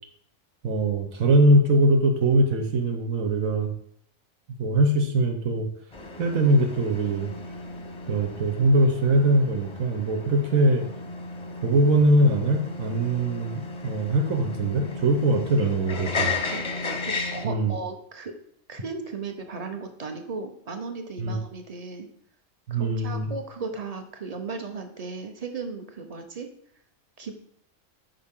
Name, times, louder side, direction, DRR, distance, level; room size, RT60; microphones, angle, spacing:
voice 1, 0.6-3.7 4.6-5.7 6.2-7.3 8.1-10.8 11.6-16.3 17.4-17.8 21.2-21.4 22.7-23.3, right 1 dB, 85° right, 4 dB, 1.4 m, -22 dB
sound 1, 5.9-17.4, left 3 dB, 25° left, 0.7 m, -34 dB
voice 2, 16.5-18.4 18.7-22.1 22.7-26.5 27.2-27.3, right 4 dB, 35° right, 5 dB, 0.9 m, -36 dB
8.9 x 5.6 x 3.7 m, 0.66 s
omnidirectional pair, 1.4 m